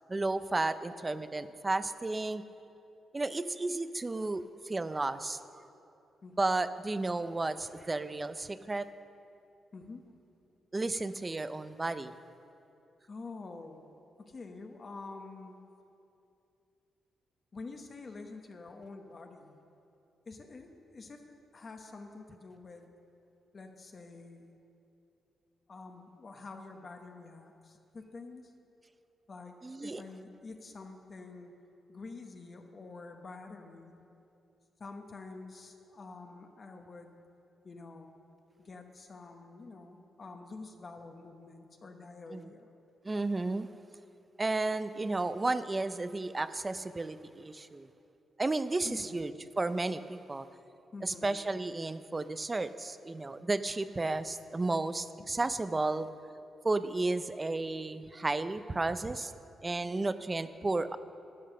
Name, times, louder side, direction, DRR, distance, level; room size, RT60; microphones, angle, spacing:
voice 1, 0.1-2.4 3.1-5.4 6.4-8.9 10.7-12.1 29.6-30.0 42.3-42.5 43.0-43.7 44.4-47.9 48.4-50.5 51.0-56.1 56.6-59.3 59.6-61.0, right 2 dB, 20° right, 13 dB, 0.4 m, -33 dB
voice 2, 9.7-10.1 13.1-13.9 14.2-15.6 17.5-19.6 20.3-22.9 23.5-24.5 25.7-28.5 29.3-31.5 31.9-34.0 34.8-37.2 37.6-38.1 38.6-42.7 48.8-49.2 50.9-51.4 55.2-55.3, left 3 dB, 35° left, 4 dB, 0.9 m, -47 dB
12.5 x 8.9 x 6.6 m, 2.7 s
cardioid pair, 125°, 0 cm